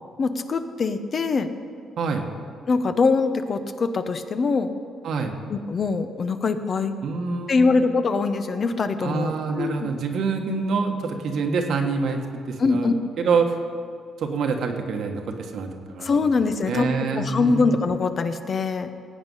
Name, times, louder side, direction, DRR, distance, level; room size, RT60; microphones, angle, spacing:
voice 1, 0.2-1.5 2.7-4.7 5.5-6.9 7.5-9.9 12.6-12.9 16.0-16.9 17.1-18.9, left 4 dB, 45° left, 9 dB, 0.8 m, -23 dB
voice 2, 2.0-2.3 5.0-5.4 7.0-7.7 9.0-12.9 13.2-13.5 14.2-16.1 16.7-17.8, right 5 dB, 70° right, 3 dB, 1.4 m, -26 dB
17.0 x 8.2 x 5.5 m, 2.2 s
cardioid pair, 90°, 0 cm